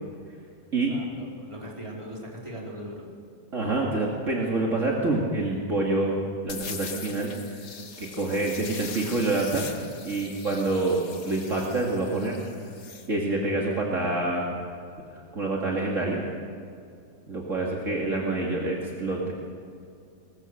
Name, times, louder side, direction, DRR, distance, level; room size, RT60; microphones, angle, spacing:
voice 1, 0.9-3.0, equal, 15° right, -3 dB, 4.2 m, -40 dB
voice 2, 3.5-6.2 6.4-7.3 8.0-9.7 10.0-12.4 13.1-14.5 15.3-16.2 17.3-19.3, right 2 dB, 50° right, -3 dB, 2.8 m, -27 dB
sound 1, 6.5-13.1, left 5 dB, 55° left, 1.8 m, -41 dB
22.0 x 21.0 x 6.7 m, 2.4 s
omnidirectional pair, 1.8 m